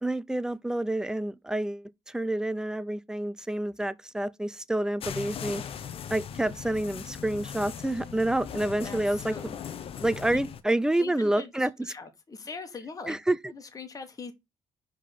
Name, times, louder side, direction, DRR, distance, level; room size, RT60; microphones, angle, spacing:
voice 1, 0.0-5.6 6.1-9.4 10.0-11.7 13.1-13.5, right 1 dB, 5° right, 0.5 m, -28 dB
sound 1, 5.0-10.6, left 8 dB, 60° left, 0.9 m, -39 dB
voice 2, 8.8-9.4 9.8-10.4 10.6-13.2 13.5-14.3, left 4 dB, 30° left, 1.5 m, -42 dB
5.1 x 3.8 x 5.7 m
cardioid pair, 90°, 11 cm